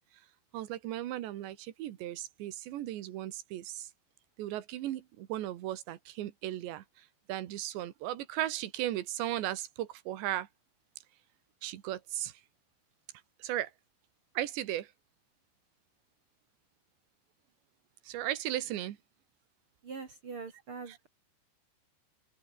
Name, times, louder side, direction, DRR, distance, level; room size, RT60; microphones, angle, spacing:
voice 1, 0.5-3.9 4.4-10.5 11.6-12.3 13.4-13.7 14.4-14.9 18.1-19.0 20.9-21.1, right 13 dB, 75° right, 3.7 m, -36 dB
voice 2, 19.8-21.1, right 5 dB, 45° right, 1.9 m, -43 dB
omnidirectional pair, 5.3 m